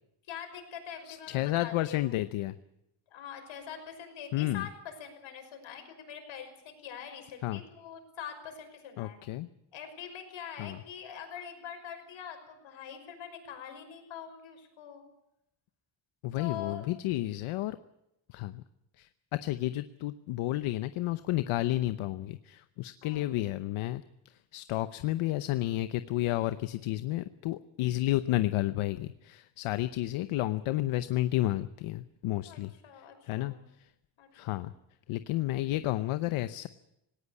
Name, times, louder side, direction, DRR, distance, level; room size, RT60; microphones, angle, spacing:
voice 1, 0.3-2.2 3.1-9.2 9.7-15.0 16.3-16.8 23.0-23.3 32.5-33.6 34.2-34.7, left 8 dB, 70° left, 5 dB, 6.1 m, -44 dB
voice 2, 1.1-2.6 4.3-4.7 7.4-7.6 9.0-9.5 10.6-10.8 16.2-17.8 18.3-18.6 19.0-24.0 24.5-32.7 33.3-33.5 34.3-34.7 35.1-36.7, left 16 dB, 90° left, 12 dB, 0.9 m, -31 dB
19.0 x 18.5 x 8.4 m, 0.85 s
cardioid pair, 145°, 48 cm